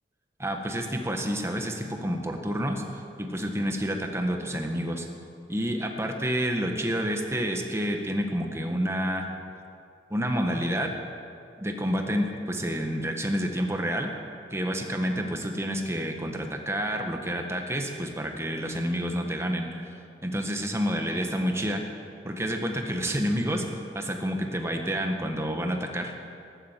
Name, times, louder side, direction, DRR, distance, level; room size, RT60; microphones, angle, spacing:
voice 1, 0.4-2.8 3.2-5.1 5.5-9.3 10.1-10.9 11.6-14.1 14.5-19.9 20.2-21.8 22.2-23.6 23.9-26.1, equal, 15° right, 3 dB, 1.4 m, -29 dB
14.5 x 11.5 x 7.5 m, 2.4 s
head